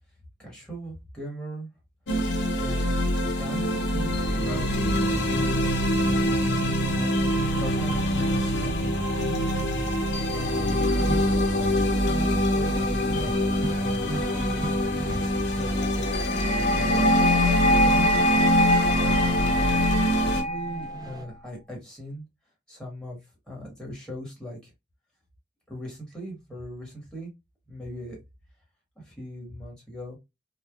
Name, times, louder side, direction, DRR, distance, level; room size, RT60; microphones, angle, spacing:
voice 1, 0.4-1.7 2.6-8.7 9.1-9.4 9.8-10.8 11.5-13.5 13.8-14.8 15.1-16.1 16.5-18.2 18.9-19.9 20.2-22.2 22.7-23.2 23.5-24.7 25.7-27.3 27.7-28.2 29.0-30.2, equal, 5° left, -2 dB, 1.3 m, -39 dB
sound 1, 2.1-20.4, equal, 75° left, 0.6 m, -24 dB
sound 2, 10.9-19.6 20.0-21.2, right 2 dB, 20° right, 0.4 m, -40 dB
sound 3, 16.1-21.1, equal, 50° left, 0.9 m, -24 dB
3.1 x 2.1 x 2.3 m, 0.21 s
head